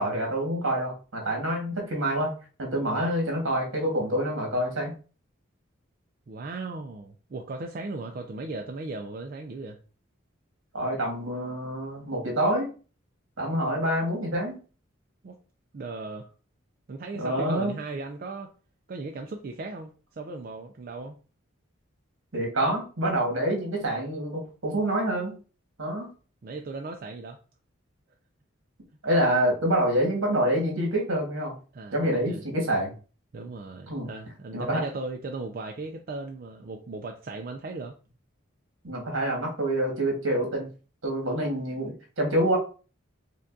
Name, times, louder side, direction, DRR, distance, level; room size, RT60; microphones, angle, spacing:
voice 1, 0.0-2.3 2.6-4.9 10.7-12.7 13.4-14.6 17.2-17.7 22.3-25.3 25.8-26.1 29.0-31.5 31.9-32.9 33.9-34.1 34.5-34.8 38.8-40.7 41.0-42.6, right 1 dB, 75° right, 1 dB, 1.4 m, -26 dB
voice 2, 6.3-9.8 15.2-15.4 15.7-16.3 16.9-18.5 18.9-21.2 26.4-27.4 31.7-32.4 33.3-37.9, right 3 dB, 45° right, 3 dB, 0.3 m, -37 dB
5.1 x 2.3 x 2.6 m, 0.36 s
head